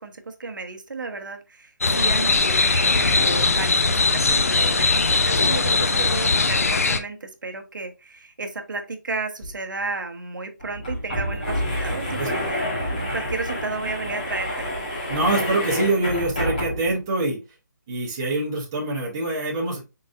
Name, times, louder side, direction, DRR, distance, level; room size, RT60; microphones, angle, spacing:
voice 1, 0.0-14.7, right 3 dB, 80° right, 1.0 m, -33 dB
sound 1, 1.8-7.0, left 3 dB, 45° left, 0.5 m, -20 dB
sound 2, 9.4-9.5 9.8-9.9 10.6-17.0, equal, 25° left, 1.4 m, -28 dB
voice 2, 15.1-17.4 17.9-19.8, right 2 dB, 10° right, 0.7 m, -24 dB
4.0 x 3.9 x 2.5 m
hypercardioid pair, 180°, 10 cm